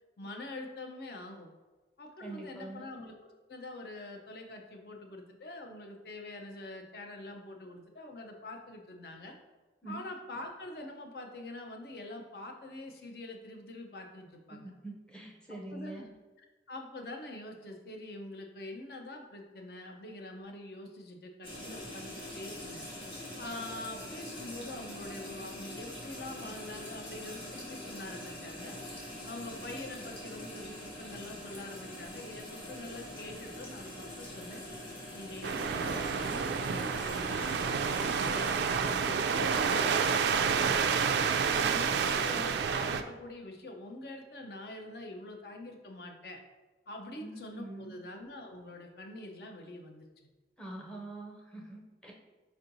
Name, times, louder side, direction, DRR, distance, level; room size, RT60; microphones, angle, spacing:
voice 1, 0.2-1.5 2.0-9.3 9.9-14.7 15.5-16.1 16.4-22.8 23.4-28.8 29.3-34.6 35.1-41.1 41.5-46.4 46.9-50.1, left 2 dB, 60° left, 3 dB, 0.6 m, -45 dB
voice 2, 2.2-2.9 9.8-10.0 14.5-16.1 47.2-48.0 50.6-52.1, right 2 dB, 5° left, -1 dB, 0.6 m, -44 dB
sound 1, 21.4-38.7, left 1 dB, 30° left, 1.1 m, -44 dB
sound 2, 35.4-43.0, right 6 dB, 75° right, 0.3 m, -29 dB
4.5 x 4.2 x 2.6 m, 1.2 s
head